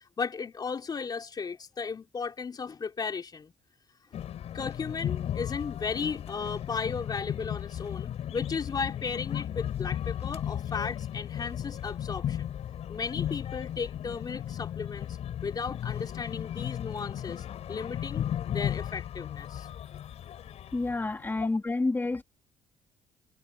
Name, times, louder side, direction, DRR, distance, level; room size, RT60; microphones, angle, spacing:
voice 1, 0.2-3.5 4.5-12.5 12.9-15.1 15.4-19.7 21.4-21.5, left 5 dB, 35° left, 3.4 m, -35 dB
sound 1, 4.1-21.4, left 10 dB, 60° left, 6.1 m, -35 dB
voice 2, 20.7-22.2, left 3 dB, 15° left, 3.1 m, -29 dB
cardioid pair, 105°, 12 cm